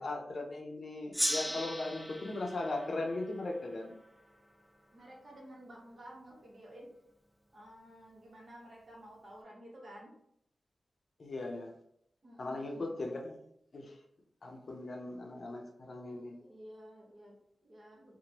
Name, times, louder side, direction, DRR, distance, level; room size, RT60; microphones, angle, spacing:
voice 1, 0.0-3.9 11.2-11.7 12.4-13.4 13.7-14.0 14.4-16.3, left 2 dB, 60° left, 1 dB, 0.5 m, -38 dB
Gong, 1.1-4.3, equal, ahead, 0.4 m, -38 dB
voice 2, 4.9-6.9 7.5-10.2 12.2-12.9 16.4-18.2, equal, 60° right, -3 dB, 1.0 m, -52 dB
2.9 x 2.1 x 2.9 m, 0.73 s
cardioid pair, 55°, 0 cm